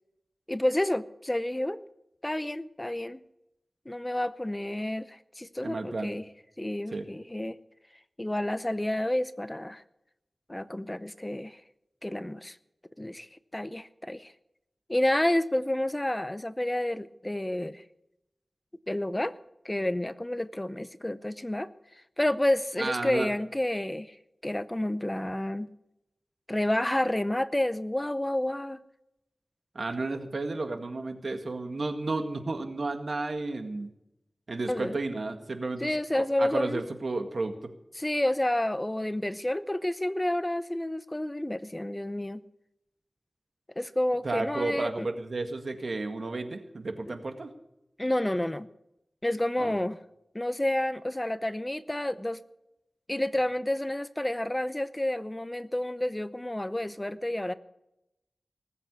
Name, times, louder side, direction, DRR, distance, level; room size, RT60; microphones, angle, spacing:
voice 1, 0.5-1.8 2.2-3.2 3.9-6.2 6.6-7.6 8.2-9.8 10.5-11.6 12.0-12.6 13.0-14.3 14.9-17.8 18.9-19.3 19.6-21.7 22.2-24.2 24.4-25.7 26.5-28.8 34.7-35.0 35.8-36.8 38.0-42.4 43.8-45.1 47.0-47.1 48.0-48.7 49.2-50.0 50.3-52.4 53.1-57.5, left 1 dB, 20° left, 14 dB, 0.7 m, -30 dB
voice 2, 5.6-6.1 6.9-7.1 22.8-23.3 29.8-33.9 34.5-35.9 36.2-37.6 44.2-47.5 49.6-49.8, right 3 dB, 65° right, 6 dB, 2.0 m, -32 dB
19.5 x 8.3 x 8.3 m, 0.85 s
wide cardioid pair, 65°, 0 cm